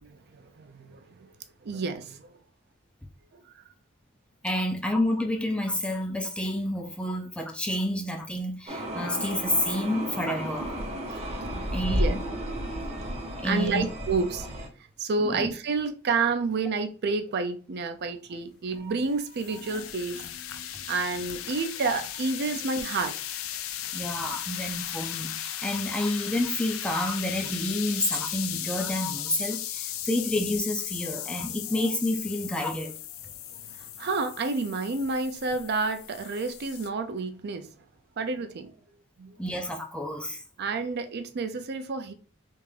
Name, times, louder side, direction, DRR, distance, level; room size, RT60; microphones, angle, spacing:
voice 1, 0.1-1.3 1.6-2.3 11.5-12.2 12.6-12.8 13.1-14.6 15.0-20.2 20.9-23.2 33.5-37.7 38.2-38.7 39.2-39.4 40.6-42.1, right 4 dB, 55° right, 0.4 m, -30 dB
voice 2, 4.4-10.7 11.7-12.2 13.4-13.9 15.2-15.5 22.5-22.7 23.9-32.9 39.4-40.4, left 1 dB, 5° left, 0.4 m, -29 dB
sound 1, 8.7-14.7, equal, 30° right, 0.8 m, -32 dB
sound 2, 18.7-36.9, left 11 dB, 80° left, 0.4 m, -36 dB
3.4 x 2.5 x 3.3 m
head